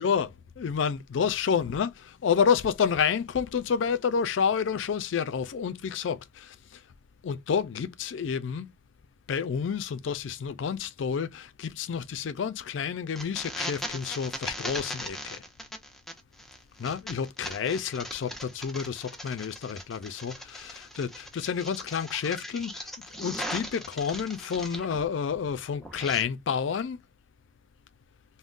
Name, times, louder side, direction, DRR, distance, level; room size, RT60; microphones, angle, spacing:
voice 1, 0.0-6.8 7.2-8.7 9.3-15.4 16.8-27.0, left 7 dB, 75° left, 0.4 m, -29 dB
sound 1, 13.2-25.1 25.3-26.2, equal, ahead, 0.6 m, -39 dB
3.6 x 2.1 x 2.4 m
head